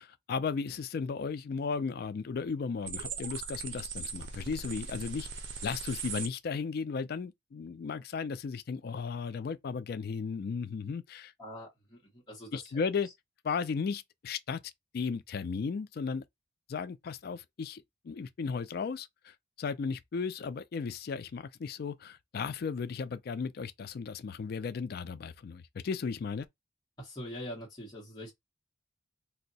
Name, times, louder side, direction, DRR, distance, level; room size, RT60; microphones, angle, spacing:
voice 1, 0.0-5.3 5.6-11.3 12.5-13.1 13.4-14.6 14.9-16.2 16.7-26.5, left 5 dB, 55° left, 0.3 m, -35 dB
sound 1, 2.8-6.3, right 5 dB, 75° right, 0.6 m, -39 dB
voice 2, 11.4-13.1 27.0-28.3, equal, 20° left, 0.9 m, -44 dB
2.6 x 2.1 x 3.9 m
head